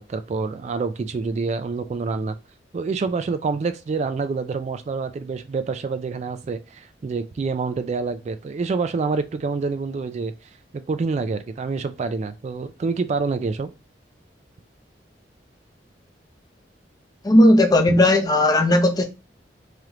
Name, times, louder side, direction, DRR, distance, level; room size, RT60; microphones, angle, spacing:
voice 1, 0.0-2.4 2.7-10.3 10.7-13.7 17.9-18.0, right 4 dB, 40° right, 0.3 m, -27 dB
voice 2, 17.2-19.0, left 1 dB, 20° left, 0.6 m, -16 dB
3.3 x 3.0 x 3.6 m
head